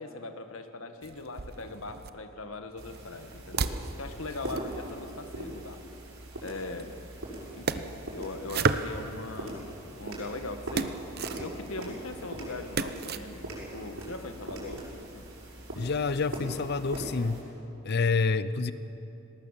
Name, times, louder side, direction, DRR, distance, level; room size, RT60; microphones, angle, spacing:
voice 1, 0.0-5.8 6.4-6.9 7.5-11.0 11.4-14.8 15.1-15.3, left 2 dB, 70° left, 8 dB, 1.5 m, -40 dB
sound 1, 1.0-2.1 2.8-5.8 6.7-9.4 9.9-13.2, right 4 dB, 50° right, 0.8 m, -35 dB
sound 2, 2.8-17.4, right 1 dB, 70° right, 6.3 m, -41 dB
voice 2, 15.7-17.5 17.8-18.7, left 4 dB, 50° left, 15 dB, 0.6 m, -28 dB
19.0 x 18.5 x 7.5 m, 2.9 s
head